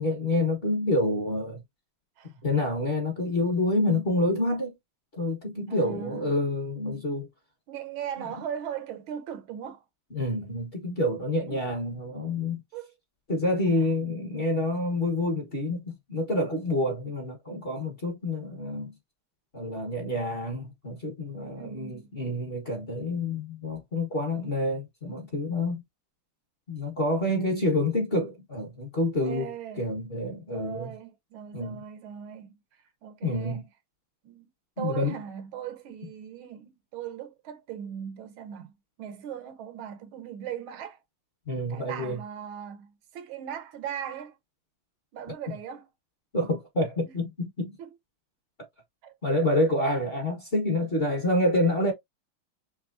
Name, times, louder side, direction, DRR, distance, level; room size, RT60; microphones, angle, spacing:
voice 1, 0.0-1.6 2.4-4.7 5.1-7.3 10.1-12.6 13.3-18.9 19.5-25.8 26.7-29.5 29.8-30.9 31.5-31.8 33.2-33.6 34.8-35.1 41.5-42.2 46.3-47.8 49.2-51.9, left 1 dB, 35° left, 1.2 m, -28 dB
voice 2, 5.7-6.3 7.7-9.8 11.5-11.6 12.7-12.9 21.4-22.1 29.2-29.9 30.5-32.5 33.0-33.6 34.2-34.5 34.8-41.0 41.7-44.4 45.1-45.9 47.0-47.1 47.8-47.9 49.0-49.1, right 9 dB, 75° right, 1.5 m, -39 dB
5.8 x 2.3 x 2.6 m
omnidirectional pair, 2.3 m